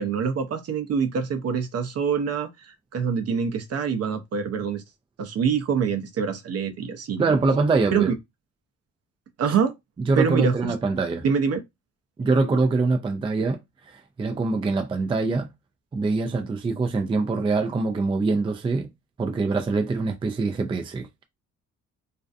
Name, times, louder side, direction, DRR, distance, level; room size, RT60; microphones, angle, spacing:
voice 1, 0.0-4.8 5.2-7.4 7.9-8.1 9.4-9.7 10.2-10.7 11.2-11.6, right 6 dB, 55° right, 0.6 m, -25 dB
voice 2, 7.2-8.1 10.1-11.2 12.2-15.5 15.9-18.9 19.2-21.1, right 3 dB, 20° right, 0.4 m, -24 dB
2.5 x 2.2 x 2.5 m
cardioid pair, 90°, 30 cm